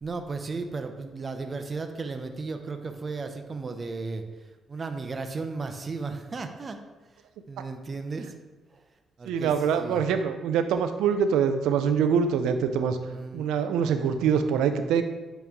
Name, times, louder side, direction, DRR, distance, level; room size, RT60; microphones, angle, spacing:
voice 1, 0.0-4.2 4.7-6.8 7.5-8.3 8.7-8.8 9.2-10.0 13.0-13.6, right 4 dB, 35° right, 7 dB, 0.6 m, -35 dB
voice 2, 9.3-13.0 13.3-15.0, right 7 dB, 90° right, 9 dB, 0.4 m, -24 dB
8.7 x 3.1 x 3.5 m, 1.2 s
cardioid pair, 90°, 0 cm